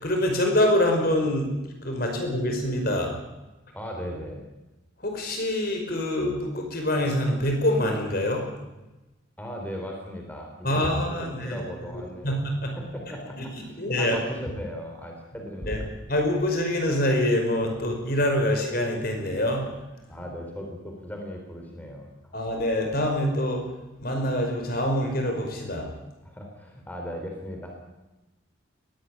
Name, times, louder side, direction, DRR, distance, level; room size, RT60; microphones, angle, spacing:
voice 1, 0.0-1.5 1.8-3.2 5.0-8.4 10.6-11.6 12.2-12.8 13.4-13.5 13.8-14.2 15.7-15.8 16.1-19.7 22.3-23.7 24.0-25.9, left 1 dB, 45° left, 3 dB, 5.3 m, -25 dB
voice 2, 3.7-4.4 9.4-10.8 11.3-12.3 12.8-15.8 20.1-22.3 26.2-27.7, equal, 10° left, 1 dB, 4.0 m, -37 dB
21.0 x 17.5 x 9.7 m, 1.0 s
head